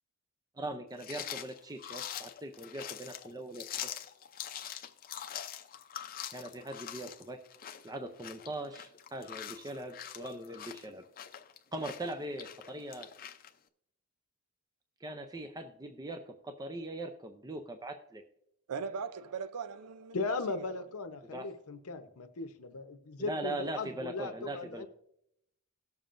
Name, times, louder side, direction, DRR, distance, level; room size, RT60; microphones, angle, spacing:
voice 1, 0.6-3.7 6.3-7.4 7.8-11.0 11.7-13.1 15.0-18.2 21.3-21.5 23.2-24.9, right 1 dB, 15° right, 0.5 m, -40 dB
sound 1, 1.0-13.5, left 9 dB, 40° left, 0.6 m, -44 dB
voice 2, 18.7-20.7, right 5 dB, 90° right, 0.5 m, -40 dB
voice 3, 20.1-24.9, left 3 dB, 70° left, 0.9 m, -38 dB
18.0 x 7.0 x 2.5 m
head